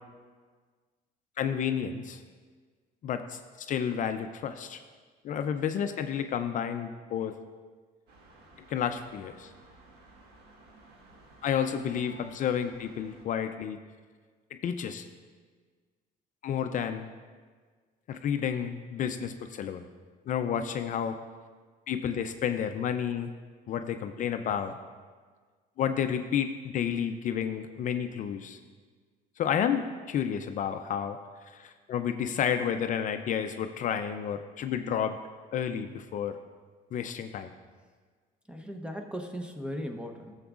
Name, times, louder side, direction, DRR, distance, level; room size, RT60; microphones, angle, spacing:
voice 1, 1.4-2.2 3.0-4.8 5.2-7.3 8.7-9.5 11.4-13.8 14.6-15.0 16.4-17.1 18.1-19.8 20.3-21.2 21.9-23.3 23.7-24.8 25.8-28.6 29.4-31.2 31.4-35.2 35.5-36.4 36.9-37.5, left 8 dB, 50° left, 8 dB, 0.4 m, -31 dB
sound 1, 8.1-13.2, right 1 dB, 75° right, 1.4 m, -55 dB
voice 2, 38.5-40.3, equal, 5° right, 4 dB, 0.7 m, -37 dB
13.5 x 7.1 x 2.4 m, 1.5 s
cardioid pair, 110°, 17 cm